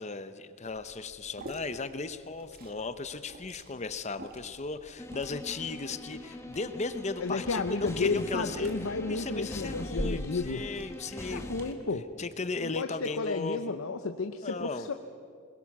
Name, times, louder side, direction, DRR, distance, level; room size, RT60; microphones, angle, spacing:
voice 1, 0.0-8.7 9.1-11.5 12.2-13.8 14.4-14.9, left 3 dB, 35° left, 11 dB, 0.8 m, -36 dB
Liquid, 0.6-11.7, right 1 dB, 45° right, 2.0 m, -45 dB
sound 1, 5.0-11.7, left 1 dB, 15° left, 1.2 m, -42 dB
voice 2, 7.2-10.6 11.3-12.1 12.6-14.9, left 3 dB, 75° left, 7 dB, 0.8 m, -32 dB
21.5 x 21.0 x 6.1 m, 2.3 s
head